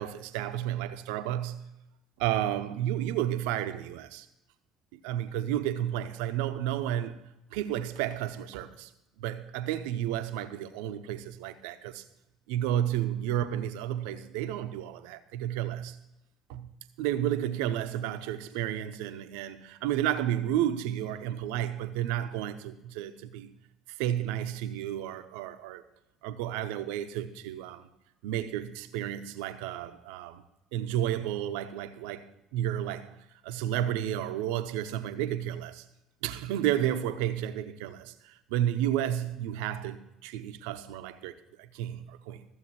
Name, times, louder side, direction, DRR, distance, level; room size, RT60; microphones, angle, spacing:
voice 1, 0.0-1.7 2.2-4.3 4.9-7.2 7.5-8.9 9.2-12.0 12.5-16.0 16.5-16.7 17.0-23.5 23.9-25.8 26.2-27.9 28.2-30.4 30.7-33.2 33.4-35.9 36.2-42.4, right 11 dB, 70° right, 0.8 m, -32 dB
14.5 x 7.4 x 6.1 m
hypercardioid pair, 60°, 0 cm